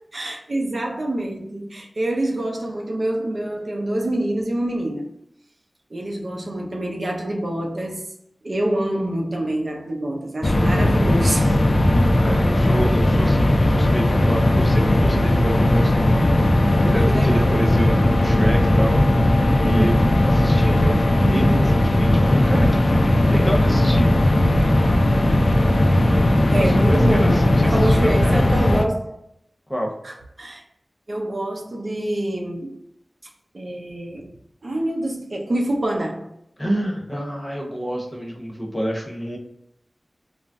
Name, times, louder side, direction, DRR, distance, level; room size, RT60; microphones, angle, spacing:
voice 1, 0.0-5.1 5.9-8.1 8.4-11.6 16.8-17.7 19.6-19.9 21.2-21.7 26.5-29.1 30.0-30.6 31.1-32.8 33.5-34.3 34.6-36.3, right 1 dB, 65° right, 0.6 m, -26 dB
sound 1, 10.4-28.9, left 1 dB, 55° left, 0.3 m, -17 dB
voice 2, 12.2-16.2 16.8-19.0 19.6-24.2 26.6-28.5 29.7-29.9 36.6-39.4, equal, 15° left, 0.8 m, -28 dB
2.5 x 2.0 x 3.4 m
wide cardioid pair, 65°, 0 cm